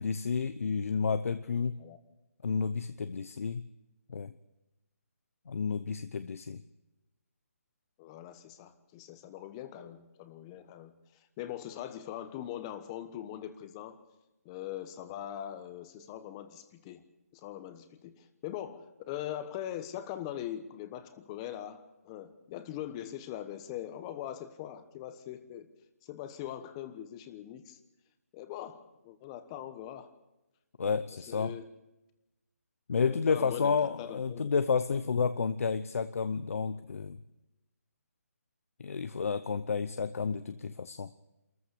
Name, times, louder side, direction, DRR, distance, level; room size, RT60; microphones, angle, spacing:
voice 1, 0.0-1.8 2.4-3.7 4.1-4.3 5.5-6.6 30.8-31.5 32.9-37.2 38.8-41.1, left 5 dB, 60° left, 12 dB, 0.8 m, -31 dB
voice 2, 8.0-10.9 11.4-14.0 14.4-17.0 17.3-25.7 26.0-27.8 28.3-30.1 31.3-31.7 33.0-34.5, left 11 dB, 20° left, 11 dB, 1.2 m, -41 dB
26.5 x 14.5 x 7.0 m, 0.99 s
hypercardioid pair, 160°, 8 cm